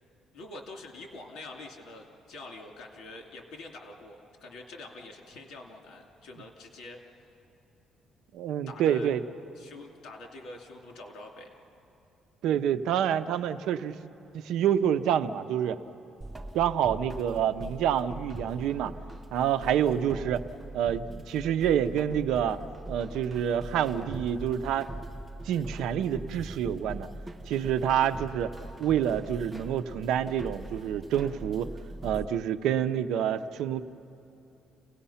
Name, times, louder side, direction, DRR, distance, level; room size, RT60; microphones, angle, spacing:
voice 1, 0.3-7.1 8.7-9.1 9.6-11.6, left 2 dB, 70° left, 1 dB, 2.8 m, -45 dB
voice 2, 8.3-9.2 12.4-13.9 14.3-15.8 16.5-18.9 19.3-20.4 20.7-22.6 22.9-24.9 25.5-27.1 27.5-28.5 28.8-31.7 32.0-33.8, right 9 dB, 80° right, 11 dB, 0.7 m, -27 dB
sound 1, 16.2-32.3, right 1 dB, 10° right, 0.8 m, -42 dB
30.0 x 18.5 x 5.7 m, 2.8 s
cardioid pair, 145°, 0 cm